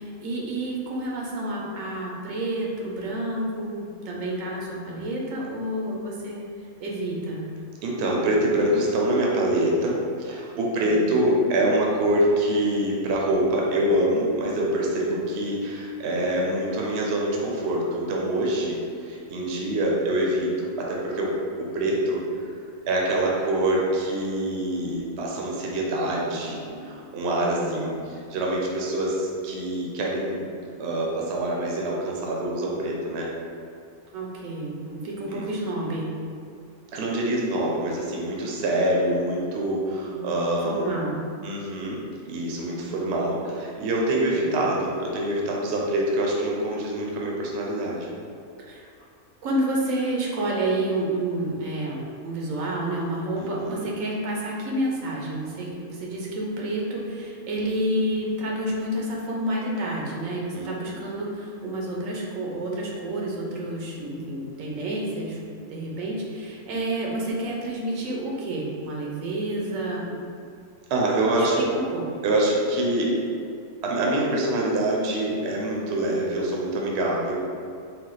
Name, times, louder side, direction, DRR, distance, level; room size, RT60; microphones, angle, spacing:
voice 1, 0.0-7.5 10.7-11.2 27.4-27.8 34.1-36.1 40.0-41.2 42.7-43.3 44.3-44.7 48.6-48.9 49.4-65.4 65.7-70.2 71.4-72.0, right 1 dB, 80° right, -2 dB, 1.1 m, -30 dB
voice 2, 7.8-21.3 21.6-22.5 22.9-30.4 30.8-33.3 35.3-35.4 36.9-40.9 41.4-42.0 42.3-48.1 53.4-53.9 60.5-61.0 70.9-71.6 72.2-73.2 73.8-77.4, right 1 dB, 60° right, -2 dB, 0.9 m, -25 dB
4.1 x 2.3 x 3.8 m, 2.4 s
omnidirectional pair, 1.4 m